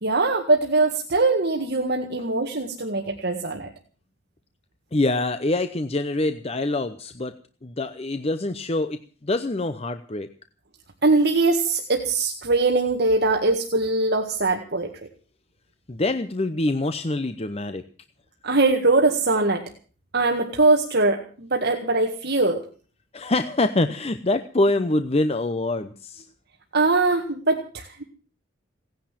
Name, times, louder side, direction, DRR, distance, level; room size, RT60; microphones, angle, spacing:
voice 1, 0.0-3.7 11.0-14.9 18.4-19.6 20.1-22.6 26.7-28.0, right 3 dB, 55° right, 2 dB, 1.9 m, -22 dB
voice 2, 4.9-7.3 7.6-10.3 15.9-17.8 23.1-26.3, left 2 dB, 30° left, 10 dB, 0.7 m, -25 dB
17.5 x 10.5 x 7.5 m, 0.41 s
head